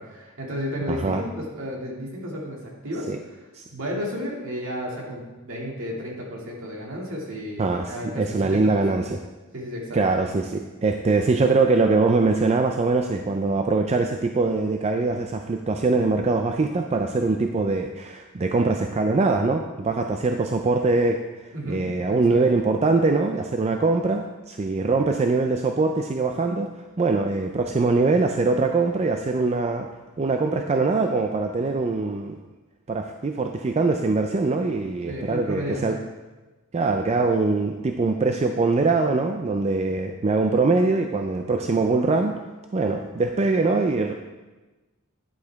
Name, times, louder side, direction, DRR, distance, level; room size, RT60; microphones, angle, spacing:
voice 1, 0.0-3.4 3.7-8.8 9.5-10.0 21.5-22.5 35.1-36.0, equal, 60° right, -2 dB, 2.2 m, -33 dB
voice 2, 0.9-1.2 3.1-3.2 3.5-3.6 7.6-9.2 9.9-21.2 21.7-26.7 27.0-29.9 30.2-32.4 32.9-36.0 36.7-42.3 42.7-44.1, right 3 dB, 30° right, 5 dB, 0.4 m, -22 dB
10.0 x 8.0 x 3.5 m, 1.2 s
head